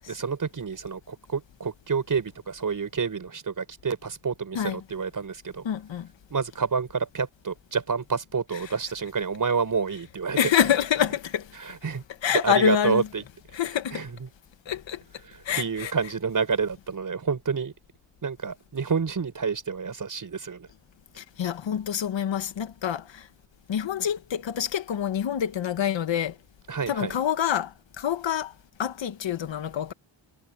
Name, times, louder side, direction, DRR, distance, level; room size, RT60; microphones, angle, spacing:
voice 1, 0.1-5.6 6.3-10.4 11.6-12.0 12.4-13.2 13.5-13.6 13.9-14.1 15.5-17.7 18.2-20.7 26.7-27.1, right 5 dB, 45° right, 6.5 m, -28 dB
voice 2, 5.6-6.1 8.6-8.7 10.3-11.4 12.2-13.1 13.5-14.0 14.7-15.0 15.5-15.9 21.2-23.2 23.7-26.3 26.9-27.7 28.0-28.5 28.8-29.9, left 9 dB, 70° left, 1.5 m, -26 dB
wide cardioid pair, 145°, 46 cm